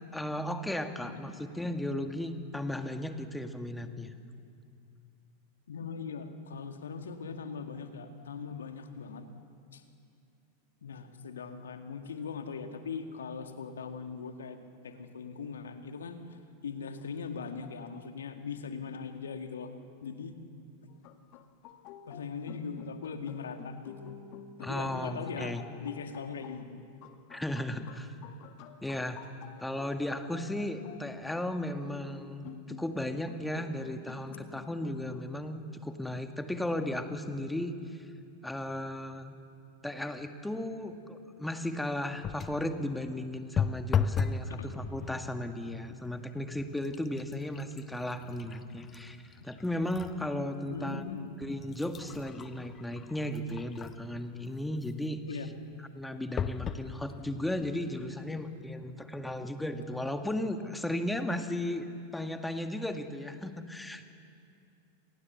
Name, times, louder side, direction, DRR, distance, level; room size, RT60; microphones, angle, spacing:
voice 1, 0.0-4.1 24.6-25.6 27.3-28.1 28.8-29.2 29.6-38.1 38.4-39.4 39.8-51.0 51.4-55.2 55.8-61.9 62.1-64.0, left 1 dB, 5° left, 7 dB, 1.8 m, -35 dB
voice 2, 5.7-9.3 9.7-9.9 10.8-14.6 14.8-16.4 16.6-19.7 20.0-20.3 22.1-24.1 24.6-26.8 44.5-44.7 50.7-51.4 55.3-55.5, left 5 dB, 65° left, 6 dB, 2.1 m, -40 dB
sound 1, 20.9-35.2, left 8 dB, 40° left, 2.0 m, -50 dB
sound 2, 42.2-42.7 43.6-44.5 44.8-45.3 46.0-46.2 46.6-50.2 50.6-50.7 51.4-54.1 56.4-56.9 57.6-57.7 57.9-58.0, left 6 dB, 25° left, 1.2 m, -35 dB
29.5 x 26.5 x 7.1 m, 2.5 s
figure-of-eight pair, 90°, 0 cm